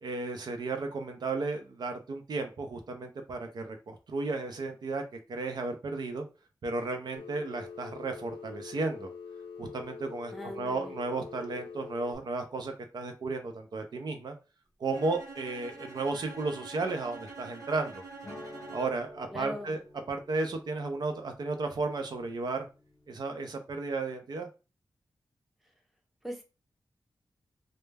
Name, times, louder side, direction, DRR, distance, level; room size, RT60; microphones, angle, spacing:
voice 1, 0.0-5.0 5.3-6.2 6.6-9.1 9.6-14.3 14.8-18.0 18.7-19.8 20.1-22.7 23.1-24.5, right 3 dB, 60° right, 5 dB, 0.4 m, -34 dB
Telephone, 7.2-12.2, left 5 dB, 80° left, 0.5 m, -44 dB
voice 2, 10.3-10.9 19.3-19.8 26.2-26.4, equal, ahead, 2 dB, 0.6 m, -40 dB
Bowed string instrument, 14.9-19.2, right 3 dB, 45° right, 0.9 m, -46 dB
sound 1, 18.2-23.1, left 1 dB, 55° left, 0.8 m, -51 dB
2.1 x 2.0 x 3.2 m, 0.31 s
wide cardioid pair, 150°, 8 cm